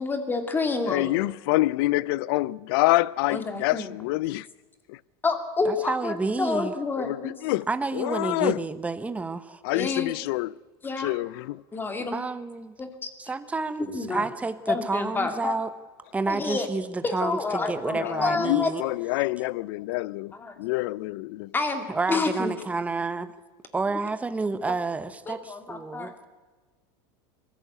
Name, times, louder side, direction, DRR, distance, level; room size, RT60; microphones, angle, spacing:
voice 1, 0.0-1.2 3.3-3.9 5.2-7.4 9.7-10.1 10.8-11.1 11.7-12.2 12.8-13.1 13.8-14.3 14.7-15.5 16.3-16.7 17.0-18.7 20.3-20.6 21.5-22.5 25.3-26.1, left 3 dB, 15° left, 2.5 m, -29 dB
voice 2, 0.9-4.5 4.9-5.0 7.0-7.7 7.9-8.6 9.6-10.5 11.0-11.6 17.9-21.5, left 19 dB, 70° left, 0.6 m, -26 dB
voice 3, 5.6-6.7 7.7-9.6 12.1-12.7 13.2-15.7 16.1-18.8 21.9-23.3 23.7-26.1, right 3 dB, 10° right, 1.0 m, -29 dB
22.5 x 15.0 x 8.2 m
supercardioid pair, 140°, 13 cm